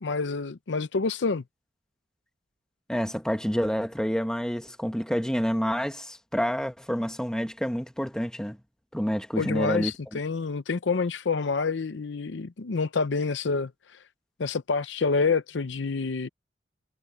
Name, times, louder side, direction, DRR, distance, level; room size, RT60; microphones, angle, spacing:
voice 1, 0.0-1.4 9.4-13.7 14.4-16.3, left 4 dB, 80° left, 0.6 m, -27 dB
voice 2, 2.9-8.6 8.9-9.9, equal, 5° left, 1.4 m, -28 dB
head